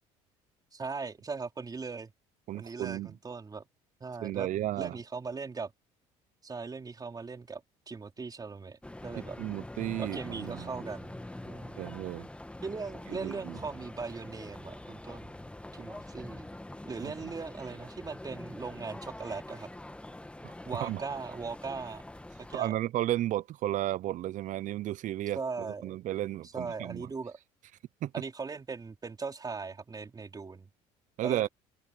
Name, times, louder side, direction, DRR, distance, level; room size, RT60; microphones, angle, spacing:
voice 1, 0.7-2.1 2.5-3.7 4.0-4.5 4.8-5.7 6.4-9.4 10.0-11.8 12.6-15.4 15.7-16.5 16.9-19.7 20.7-22.0 22.4-22.7 25.4-26.0 26.4-27.4 28.1-30.7 31.2-31.5, right 4 dB, 25° right, 3.8 m, -39 dB
voice 2, 2.5-3.1 4.2-4.9 9.4-10.7 11.8-12.3 13.1-13.6 17.0-17.1 20.4-20.5 20.8-21.0 22.5-27.1 28.0-28.1 31.2-31.5, right 14 dB, 60° right, 0.7 m, -33 dB
sound 1, 8.8-22.6, left 1 dB, 10° left, 1.7 m, -45 dB
open air
supercardioid pair, 80°, 15 cm